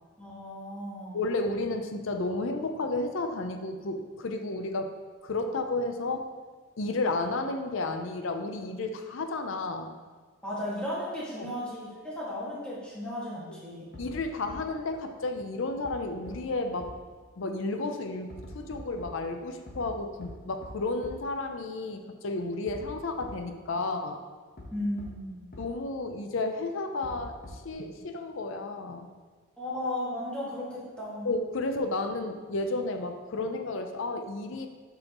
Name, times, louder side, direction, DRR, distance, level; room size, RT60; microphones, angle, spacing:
voice 1, 0.2-1.2 10.4-13.9 24.7-25.4 29.6-31.3, left 1 dB, 5° left, -8 dB, 1.8 m, -35 dB
voice 2, 1.1-4.9 5.2-6.3 6.8-9.9 11.4-11.5 14.0-16.9 17.4-24.2 25.6-29.1 31.2-34.7, left 2 dB, 65° left, 6 dB, 0.5 m, -32 dB
sound 1, 13.9-14.2 14.5-14.6 15.8-15.9 16.3-16.4 16.8-16.9 18.3-19.1 19.7-19.9 20.2-20.3 20.6-20.7 21.0-21.1 22.7-22.9 23.2-23.3 24.6-24.7 25.0-25.1 25.5-25.6 27.0-27.7, left 1 dB, 40° left, 1.1 m, -44 dB
7.8 x 5.6 x 3.0 m, 1.4 s
head